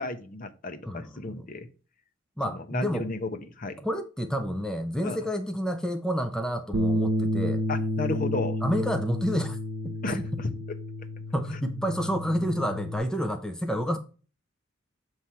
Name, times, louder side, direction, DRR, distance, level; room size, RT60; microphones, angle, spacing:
voice 1, 0.0-1.7 2.5-3.8 5.0-5.2 7.7-8.6 10.0-10.8, left 3 dB, 45° left, 0.7 m, -33 dB
voice 2, 0.8-1.5 2.4-3.1 3.8-7.6 8.6-9.6 10.3-10.5 11.3-14.0, equal, 5° left, 0.5 m, -29 dB
Bass guitar, 6.7-13.0, left 1 dB, 80° right, 0.9 m, -30 dB
7.3 x 3.2 x 5.5 m
head